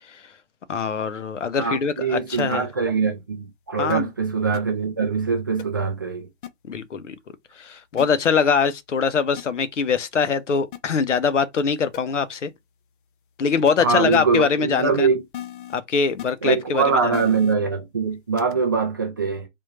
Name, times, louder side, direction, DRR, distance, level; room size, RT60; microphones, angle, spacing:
voice 1, 0.7-2.6 3.8-4.1 6.7-7.2 7.6-12.5 13.4-15.1 15.7-17.1, left 6 dB, 90° left, 0.8 m, -23 dB
voice 2, 1.6-6.3 13.8-15.2 16.4-19.5, right 5 dB, 20° right, 0.3 m, -23 dB
sound 1, 2.3-2.5 3.9-4.0 4.5-4.6 5.6-5.7 6.4-6.5 8.0-8.1 9.4-9.5 10.7-10.8 11.6-11.7 11.9-12.0 13.7-13.8 14.1-14.2 15.3-15.7 16.2-16.3 17.1-17.5 18.4-18.5, left 11 dB, 45° left, 0.5 m, -35 dB
3.6 x 2.5 x 2.9 m
hypercardioid pair, 140°, 35 cm